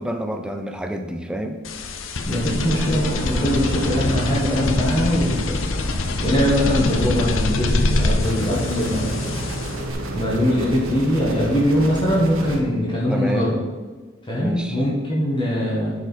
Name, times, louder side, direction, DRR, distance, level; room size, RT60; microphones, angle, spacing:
voice 1, 0.0-1.6 13.1-13.5 14.3-14.8, right 1 dB, 5° right, 6 dB, 0.5 m, -28 dB
sound 1, 1.6-9.9, left 2 dB, 70° left, 0.7 m, -24 dB
voice 2, 2.3-5.7 6.2-9.6 10.1-13.6 14.3-15.9, equal, 25° left, -6 dB, 1.5 m, -22 dB
sound 2, 2.4-13.0, equal, 40° right, 2.3 m, -37 dB
sound 3, 8.2-12.6, right 1 dB, 90° right, 1.2 m, -30 dB
10.0 x 4.7 x 4.5 m, 1.4 s
head